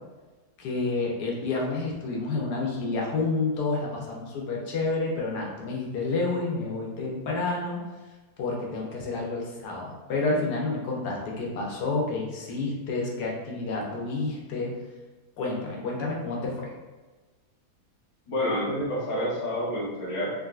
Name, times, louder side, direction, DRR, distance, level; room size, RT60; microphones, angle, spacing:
voice 1, 0.6-7.8 8.4-14.7 15.4-16.7, left 3 dB, 85° left, -2 dB, 1.3 m, -29 dB
voice 2, 18.3-20.3, equal, 30° left, -6 dB, 0.7 m, -28 dB
3.6 x 2.6 x 2.3 m, 1.2 s
omnidirectional pair, 1.7 m